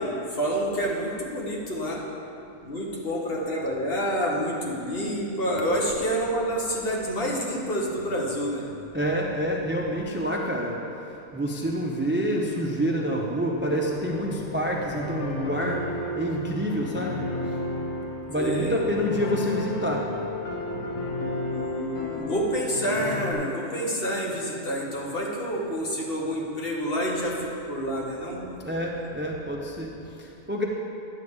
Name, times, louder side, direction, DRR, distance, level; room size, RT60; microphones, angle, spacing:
voice 1, 0.0-2.0 2.6-8.6 18.4-18.8 21.4-28.4, equal, 50° left, -2 dB, 1.4 m, -28 dB
voice 2, 8.9-17.9 18.3-21.6 28.6-30.6, equal, 15° right, -1 dB, 0.4 m, -28 dB
sound 1, 13.6-23.3, left 2 dB, 90° left, 1.4 m, -33 dB
10.0 x 8.0 x 3.6 m, 2.7 s
omnidirectional pair, 1.3 m